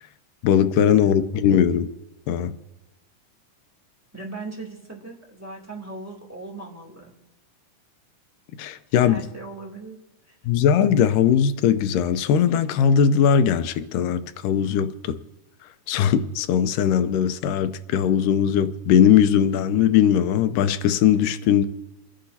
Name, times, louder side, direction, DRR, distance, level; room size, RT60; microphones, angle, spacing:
voice 1, 0.4-1.9 2.3-2.6 8.6-9.2 10.5-15.2 15.9-21.7, left 8 dB, 85° left, 2.3 m, -19 dB
voice 2, 4.1-7.1 9.0-10.0 10.3-10.4, right 3 dB, 5° right, 2.2 m, -38 dB
29.0 x 10.0 x 2.8 m
omnidirectional pair, 3.8 m